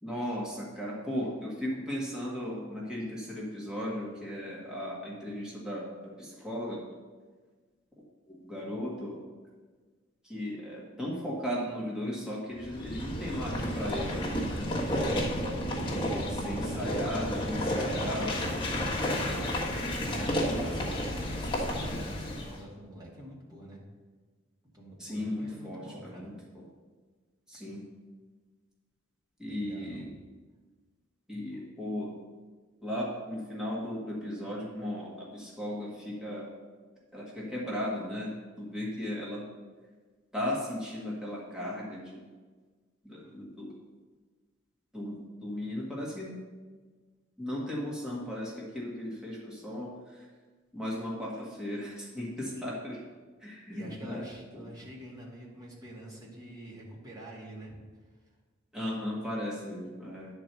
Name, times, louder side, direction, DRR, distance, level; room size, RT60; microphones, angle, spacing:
voice 1, 0.0-6.8 8.3-9.2 10.2-14.7 15.9-18.9 19.3-19.5 20.2-20.8 25.0-26.6 27.5-27.8 29.4-30.1 31.3-32.1 32.8-36.5 37.1-38.3 38.6-39.4 40.3-42.2 43.0-43.7 44.9-46.3 47.4-50.2 50.7-53.0 53.4-54.3 54.5-54.7 58.7-60.3, left 1 dB, 5° right, -5 dB, 1.6 m, -36 dB
sound 1, 12.6-22.6, equal, 25° left, 1.5 m, -31 dB
voice 2, 15.8-16.2 20.0-23.8 24.7-26.3 29.4-30.0 31.5-31.6 43.2-43.4 52.4-52.7 53.7-57.7, right 1 dB, 20° right, -4 dB, 2.1 m, -47 dB
9.7 x 4.5 x 6.8 m, 1.4 s
head